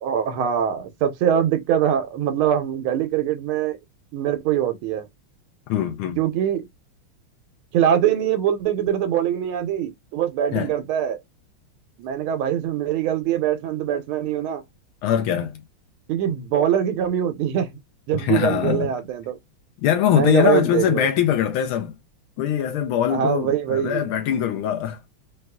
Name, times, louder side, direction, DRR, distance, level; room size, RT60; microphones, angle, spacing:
voice 1, 0.0-3.8 4.1-5.1 6.2-6.7 7.7-11.2 12.0-14.6 16.1-17.8 18.1-19.4 20.1-21.1 23.1-24.1, right 9 dB, 85° right, 1.5 m, -23 dB
voice 2, 5.7-6.2 10.5-10.7 15.0-15.6 18.1-18.9 19.8-21.9 22.4-25.0, left 10 dB, 80° left, 1.5 m, -22 dB
4.1 x 2.4 x 2.2 m
omnidirectional pair, 2.3 m